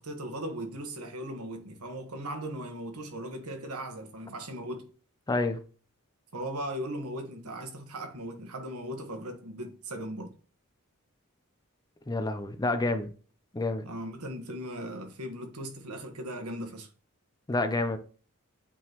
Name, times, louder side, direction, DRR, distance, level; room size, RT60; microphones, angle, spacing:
voice 1, 0.0-4.9 6.3-10.3 13.8-16.9, right 1 dB, 85° right, 1.3 m, -38 dB
voice 2, 5.3-5.6 12.1-13.1 13.5-13.9 17.5-18.0, left 2 dB, 20° left, 0.5 m, -28 dB
8.4 x 3.8 x 3.0 m
head